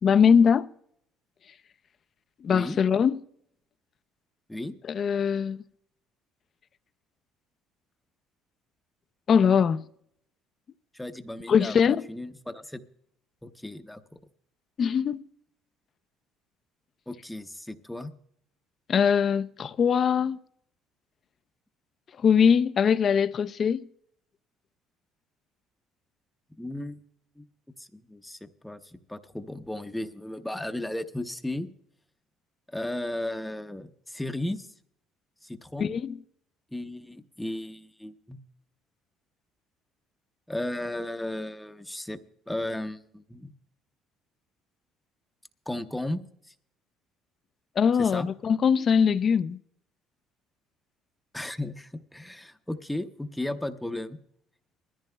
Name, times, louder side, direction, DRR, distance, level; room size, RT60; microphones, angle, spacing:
voice 1, 0.0-0.7 2.4-3.2 4.9-5.6 9.3-9.8 11.5-12.0 14.8-15.2 18.9-20.4 22.2-23.9 35.8-36.2 47.8-49.6, left 7 dB, 45° left, 0.5 m, -22 dB
voice 2, 10.9-12.8 13.4-14.0 17.1-18.1 26.6-27.0 27.4-27.5 27.8-31.7 32.7-34.7 35.4-36.0 36.7-38.4 40.5-42.2 42.5-43.5 45.7-46.5 48.0-48.3 51.3-54.2, left 1 dB, 5° left, 0.7 m, -35 dB
21.0 x 14.0 x 2.2 m
cardioid pair, 100°, 0 cm